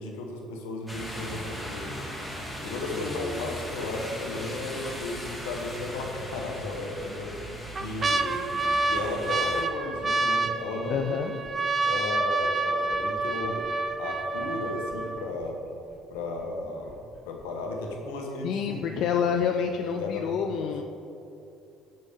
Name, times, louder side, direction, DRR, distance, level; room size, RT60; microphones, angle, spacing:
voice 1, 0.0-2.0 2.6-11.4 11.8-13.6 14.0-15.6 16.1-17.0 17.3-19.5 19.8-20.7, left 2 dB, 85° left, 1 dB, 0.9 m, -35 dB
sound 1, 0.9-9.6, equal, 5° left, 1.4 m, -38 dB
sound 2, 4.6-5.0 5.5-5.6 6.5-7.0 7.5-15.5 16.2-16.3 16.4-16.9 17.4-17.5, right 3 dB, 30° right, 0.4 m, -28 dB
voice 2, 10.9-11.3 18.4-20.8, left 7 dB, 65° left, 4 dB, 0.3 m, -28 dB
6.6 x 5.4 x 3.6 m, 2.7 s
supercardioid pair, 75°, 0 cm